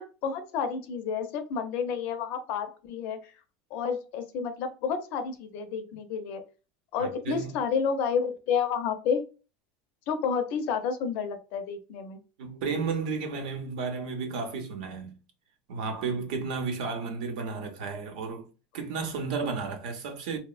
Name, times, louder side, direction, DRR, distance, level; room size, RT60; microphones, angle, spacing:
voice 1, 0.0-3.3 3.7-6.4 6.9-9.2 10.1-12.2, left 6 dB, 50° left, 0.5 m, -30 dB
voice 2, 7.0-7.6 12.4-15.2 15.7-18.5 18.7-20.4, right 4 dB, 75° right, 0.7 m, -33 dB
2.9 x 2.0 x 2.3 m
supercardioid pair, 165°, 4 cm